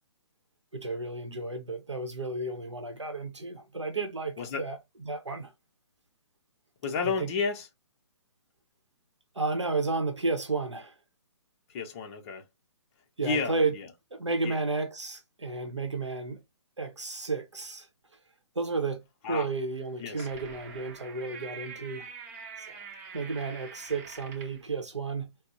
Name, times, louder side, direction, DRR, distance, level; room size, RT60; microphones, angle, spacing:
voice 1, 0.7-4.8 5.1-5.5 7.0-7.3 9.3-11.0 13.2-13.7 14.1-16.4 16.8-17.9 18.5-22.1 22.6-22.8 23.1-25.3, right 3 dB, 90° right, 0.7 m, -32 dB
voice 2, 6.8-7.7 11.7-12.5 13.2-13.9 14.4-14.6 19.2-19.5 20.0-20.3, left 4 dB, 30° left, 0.6 m, -32 dB
sound 1, 19.8-24.6, right 5 dB, 35° right, 0.8 m, -45 dB
4.2 x 2.0 x 2.5 m
figure-of-eight pair, 130°, 14 cm